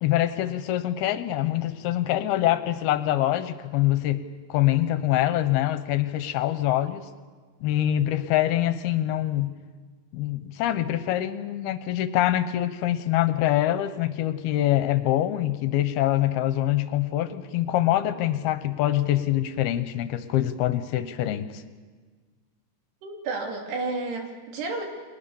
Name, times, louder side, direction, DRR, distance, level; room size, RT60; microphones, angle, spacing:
voice 1, 0.0-4.2 4.5-7.1 7.6-9.5 10.1-21.6, left 13 dB, 80° left, 11 dB, 2.8 m, -24 dB
voice 2, 23.0-24.8, right 3 dB, 80° right, 2 dB, 4.8 m, -31 dB
30.0 x 22.0 x 7.1 m, 1.5 s
omnidirectional pair, 4.7 m